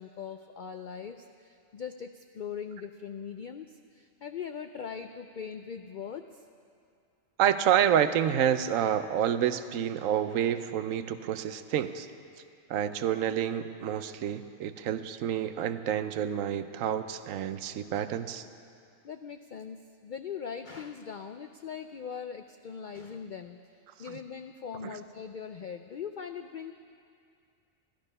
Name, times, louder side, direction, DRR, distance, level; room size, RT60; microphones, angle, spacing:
voice 1, 0.0-6.4 19.0-23.6 24.0-26.7, left 7 dB, 85° left, 7 dB, 0.4 m, -41 dB
voice 2, 7.4-12.1 12.7-18.5 24.1-24.2 24.8-25.0, right 9 dB, 80° right, 11 dB, 1.0 m, -28 dB
13.5 x 13.5 x 5.4 m, 2.4 s
omnidirectional pair, 1.4 m